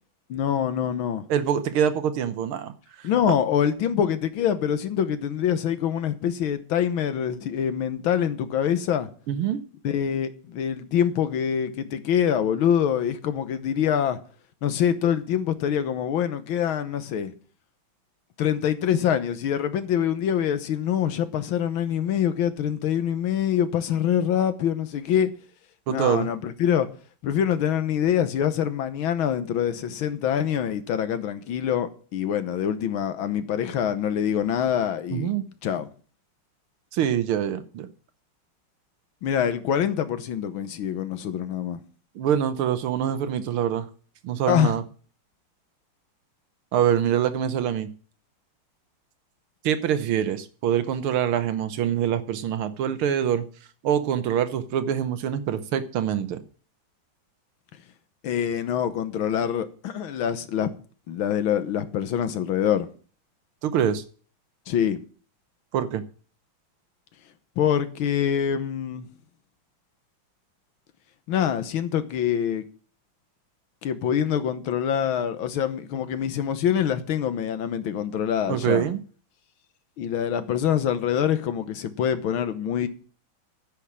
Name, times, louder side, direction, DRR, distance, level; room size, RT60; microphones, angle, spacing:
voice 1, 0.3-1.2 3.0-9.1 9.8-14.2 14.6-17.3 18.4-25.3 25.9-26.9 27.2-35.3 35.6-35.9 39.2-41.8 44.5-44.8 58.2-60.7 61.1-62.9 64.7-65.0 67.6-69.1 71.3-72.7 73.8-78.9 80.0-82.9, left 9 dB, 75° left, 1.8 m, -25 dB
voice 2, 1.3-2.7 9.3-9.6 25.9-26.3 35.1-35.5 36.9-37.9 42.2-43.9 44.2-44.8 46.7-47.9 49.6-53.5 53.8-56.4 63.6-64.0 65.7-66.0 78.5-79.0, right 9 dB, 90° right, 1.8 m, -25 dB
9.8 x 6.0 x 8.6 m
omnidirectional pair, 2.3 m